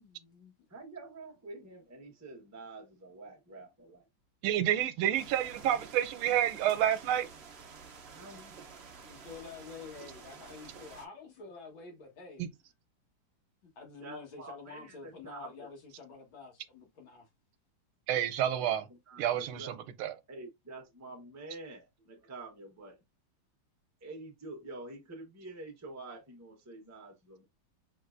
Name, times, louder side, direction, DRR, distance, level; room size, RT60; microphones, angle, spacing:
voice 1, 0.0-0.5 9.0-12.4 13.8-17.3, left 5 dB, 70° left, 2.3 m, -48 dB
voice 2, 0.7-4.0 8.0-8.6 14.0-15.7 18.6-18.8 19.1-19.7 20.3-23.0 24.0-27.5, right 2 dB, 15° right, 0.6 m, -47 dB
voice 3, 4.4-7.3 12.4-12.5 18.1-18.9 19.2-20.2, right 11 dB, 85° right, 1.5 m, -29 dB
sound 1, 5.1-11.0, right 5 dB, 60° right, 0.6 m, -50 dB
5.1 x 3.2 x 2.5 m
omnidirectional pair, 2.3 m